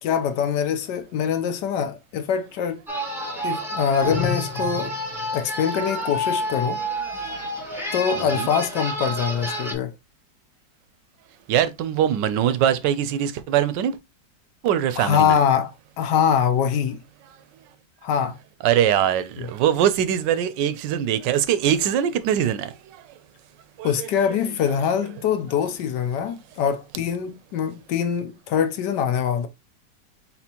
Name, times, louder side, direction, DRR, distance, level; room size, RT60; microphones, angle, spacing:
voice 1, 0.0-2.8 3.4-4.9 5.3-6.8 7.9-9.9 15.0-15.7 16.0-17.0 18.0-18.4 19.4-19.5 23.8-29.5, left 8 dB, 75° left, 1.2 m, -23 dB
sound 1, 2.9-9.7, right 1 dB, ahead, 1.1 m, -29 dB
sound 2, 4.0-5.5, left 5 dB, 40° left, 1.0 m, -30 dB
voice 2, 8.2-8.5 11.5-14.0 14.6-15.3 18.6-22.7 23.8-24.1, right 10 dB, 80° right, 1.2 m, -22 dB
4.3 x 4.2 x 2.8 m
omnidirectional pair, 2.0 m